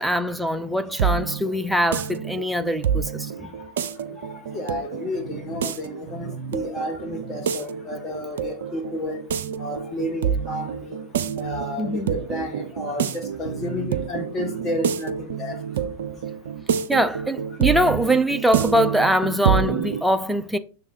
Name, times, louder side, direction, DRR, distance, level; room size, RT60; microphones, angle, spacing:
voice 1, 0.0-3.5 11.8-12.1 16.9-20.6, equal, 5° right, 0.5 m, -22 dB
sound 1, 0.6-20.0, right 8 dB, 60° right, 0.5 m, -28 dB
voice 2, 4.5-9.2 9.6-11.0 11.4-15.6, left 1 dB, 20° left, 1.3 m, -31 dB
6.5 x 3.6 x 4.4 m
figure-of-eight pair, 90°, 0 cm